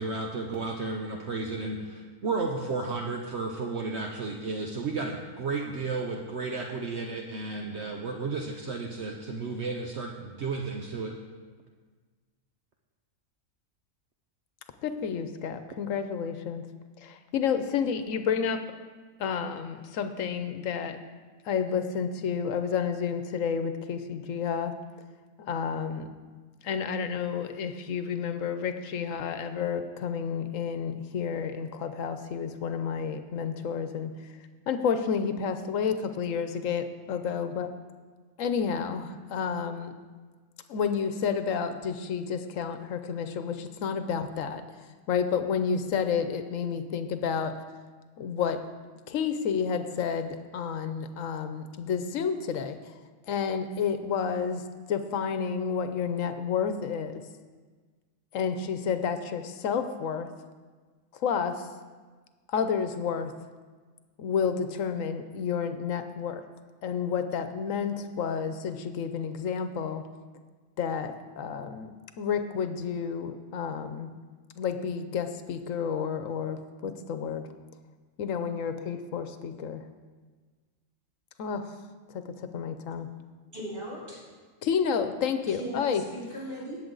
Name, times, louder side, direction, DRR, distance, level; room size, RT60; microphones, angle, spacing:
voice 1, 0.0-11.1, right 3 dB, 60° right, 1 dB, 1.1 m, -33 dB
voice 2, 14.8-16.6 17.0-18.6 19.2-21.0 21.4-24.8 25.4-26.1 26.6-34.1 34.7-37.7 38.4-39.9 40.7-44.6 45.1-47.5 48.2-48.6 49.1-52.8 53.3-57.2 58.3-60.3 61.2-61.7 62.5-63.3 64.2-66.4 66.8-70.0 70.8-74.1 74.6-77.5 78.2-79.8 81.4-81.7 82.1-82.2 82.5-83.1 84.6-86.0, left 6 dB, 80° left, 9 dB, 1.1 m, -30 dB
voice 3, 83.5-84.2 85.5-86.8, equal, 40° right, -6 dB, 3.5 m, -38 dB
18.5 x 7.4 x 3.9 m, 1.4 s
omnidirectional pair, 1.4 m